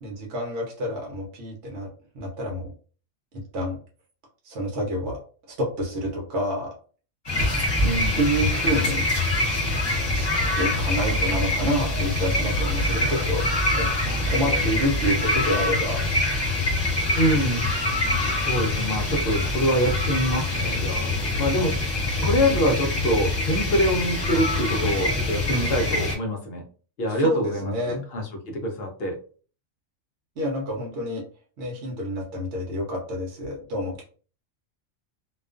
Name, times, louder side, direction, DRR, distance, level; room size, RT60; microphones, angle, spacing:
voice 1, 0.0-2.7 3.5-3.8 4.4-5.2 5.5-6.7 8.1-9.1 10.1-10.3 10.6-13.4 13.7-13.9 14.3-16.0 27.1-28.0 30.4-31.2 31.6-34.0, equal, 60° right, -1 dB, 0.9 m, -28 dB
sound 1, 7.2-26.1, left 2 dB, 20° left, 0.8 m, -24 dB
voice 2, 7.8-8.2 14.0-14.6 17.1-17.7 18.4-21.8 22.2-26.6 27.0-29.2, equal, 60° left, 2 dB, 0.7 m, -25 dB
2.4 x 2.3 x 2.4 m, 0.40 s
omnidirectional pair, 1.4 m